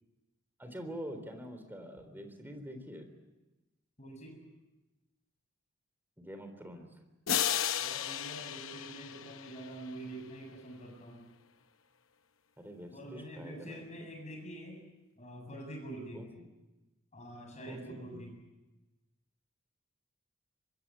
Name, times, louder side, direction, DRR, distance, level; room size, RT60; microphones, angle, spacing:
voice 1, 0.6-3.1 6.2-7.0 12.6-14.1 16.1-16.5 17.7-18.2, equal, 10° right, 6 dB, 3.6 m, -45 dB
voice 2, 4.0-4.4 7.8-11.3 12.9-14.8 15.2-16.3 17.1-18.4, right 1 dB, 35° left, 3 dB, 7.5 m, -46 dB
sound 1, 7.3-10.1, left 10 dB, 70° left, 0.9 m, -34 dB
24.5 x 21.5 x 8.6 m, 1.1 s
head